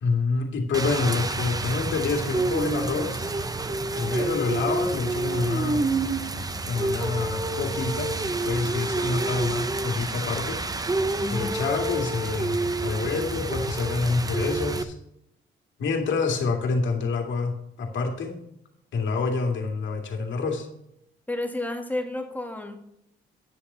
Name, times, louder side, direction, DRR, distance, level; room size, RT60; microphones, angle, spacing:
voice 1, 0.0-3.3 3.9-5.9 6.7-8.1 8.4-11.0 11.3-12.6 12.8-14.9 15.8-18.4 18.9-20.7, left 4 dB, 70° left, 2 dB, 2.4 m, -27 dB
Rain, 0.7-14.8, right 2 dB, 20° right, 0.8 m, -28 dB
voice 2, 11.2-11.6 21.3-22.7, left 2 dB, 10° left, 4 dB, 1.7 m, -31 dB
10.0 x 7.0 x 5.6 m, 0.78 s
cardioid pair, 90°, 20 cm